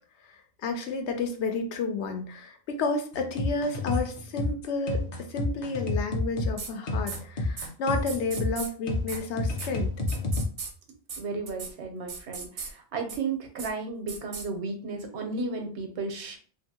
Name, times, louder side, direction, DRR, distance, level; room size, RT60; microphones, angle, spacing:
voice 1, 0.6-9.9, left 3 dB, 85° left, 5 dB, 0.9 m, -31 dB
sound 1, 3.1-10.5, left 2 dB, 50° left, 0.5 m, -30 dB
sound 2, 6.6-6.7 7.1-7.2 7.6-7.7 8.1-8.7 9.1-9.2 9.6-9.7 10.1-10.7 11.1-11.2 11.5-11.7 12.1-12.7 13.1-13.2 13.6-13.7 14.1-14.5, right 5 dB, 55° right, 0.5 m, -37 dB
voice 2, 11.2-16.4, right 3 dB, 85° right, 4 dB, 1.0 m, -34 dB
2.6 x 2.5 x 2.7 m, 0.42 s
omnidirectional pair, 1.1 m